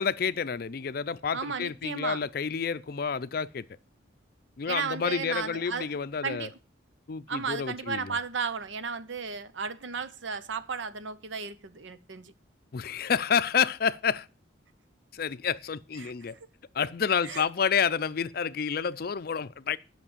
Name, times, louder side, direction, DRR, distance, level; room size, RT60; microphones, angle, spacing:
voice 1, 0.0-3.6 4.6-6.5 7.1-8.2 12.7-14.3 15.1-16.4 16.7-19.8, left 6 dB, 50° left, 0.5 m, -29 dB
voice 2, 1.3-2.3 4.7-5.9 6.2-6.6 7.3-12.3 16.0-16.1 17.2-17.4, right 5 dB, 80° right, 0.8 m, -34 dB
9.8 x 5.9 x 7.3 m
head